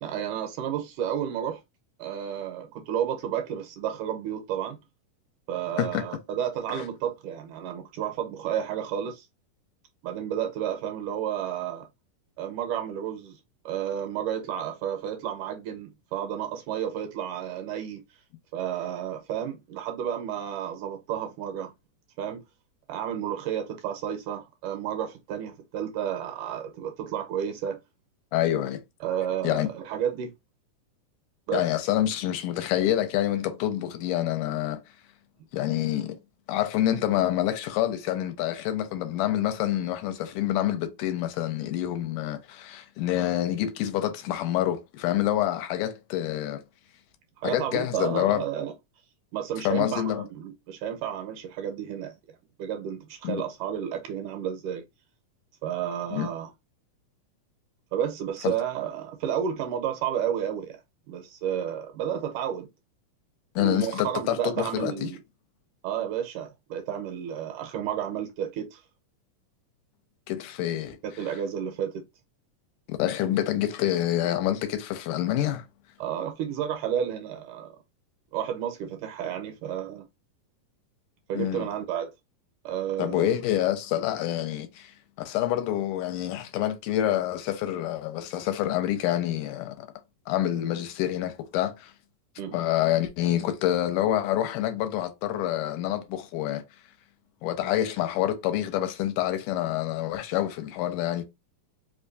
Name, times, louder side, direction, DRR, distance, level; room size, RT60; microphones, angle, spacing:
voice 1, 0.0-1.6 2.0-4.8 5.5-9.3 10.0-11.9 12.4-13.4 13.7-18.0 18.5-21.7 22.2-22.4 22.9-27.8 29.0-30.3 31.5-31.6 47.4-48.7 49.3-54.8 55.6-56.5 57.9-60.8 61.1-62.7 63.6-65.2 65.8-68.8 71.0-72.0 76.0-77.8 78.3-80.0 81.3-82.1 82.6-83.3 92.4-92.6, right 9 dB, 80° right, 2.2 m, -31 dB
voice 2, 28.3-28.8 29.4-29.7 31.5-34.8 35.5-36.2 36.5-46.6 47.4-48.4 49.7-50.3 53.2-53.4 56.1-56.3 58.4-58.5 63.6-65.1 70.3-71.0 72.9-75.6 81.4-81.7 83.0-89.9 90.3-91.9 92.5-96.6 97.4-101.2, left 12 dB, 80° left, 2.2 m, -27 dB
5.0 x 2.2 x 2.5 m
omnidirectional pair, 3.8 m